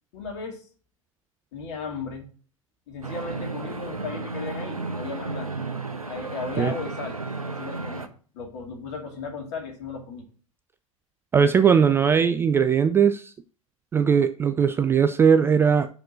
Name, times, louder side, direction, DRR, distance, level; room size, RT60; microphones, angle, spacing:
voice 1, 0.1-0.6 1.5-2.3 2.9-5.5 6.1-7.2 7.6-8.1 8.3-10.2, left 4 dB, 55° left, 2 dB, 2.4 m, -35 dB
sound 1, 3.0-8.1, right 3 dB, 85° right, 0.8 m, -33 dB
voice 2, 11.3-13.3 13.9-15.9, right 7 dB, 15° right, 11 dB, 0.3 m, -19 dB
5.9 x 4.9 x 6.2 m, 0.41 s
figure-of-eight pair, 90°, 18 cm